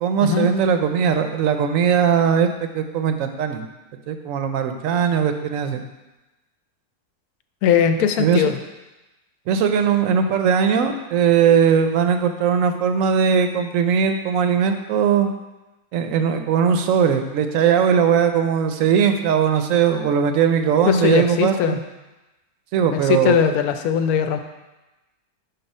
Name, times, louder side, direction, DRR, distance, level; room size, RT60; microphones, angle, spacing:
voice 1, 0.0-3.7 4.1-5.8 8.2-8.4 9.5-15.3 15.9-21.8 22.7-23.4, right 7 dB, 70° right, 7 dB, 0.9 m, -19 dB
voice 2, 7.6-8.5 20.9-21.8 22.9-24.4, left 8 dB, 75° left, 8 dB, 1.0 m, -20 dB
6.1 x 4.1 x 5.3 m, 1.1 s
omnidirectional pair, 1.6 m